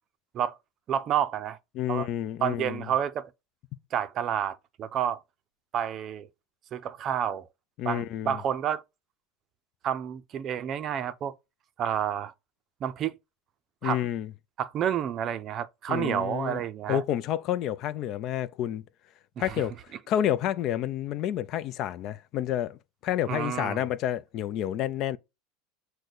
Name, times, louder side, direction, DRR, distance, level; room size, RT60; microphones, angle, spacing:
voice 1, 0.9-1.6 1.9-2.1 2.4-3.3 3.9-5.2 5.7-6.3 6.7-7.5 7.8-8.8 9.8-11.3 11.8-12.3 12.8-13.2 13.8-14.0 14.6-17.0 19.4-19.6 23.3-23.9, right 9 dB, 40° right, 0.5 m, -29 dB
voice 2, 1.7-2.8 7.8-8.4 13.8-14.3 15.9-16.6 16.9-18.8 19.4-19.8 20.1-25.2, left 11 dB, 45° left, 0.4 m, -29 dB
6.3 x 2.2 x 3.8 m
supercardioid pair, 130°, 0 cm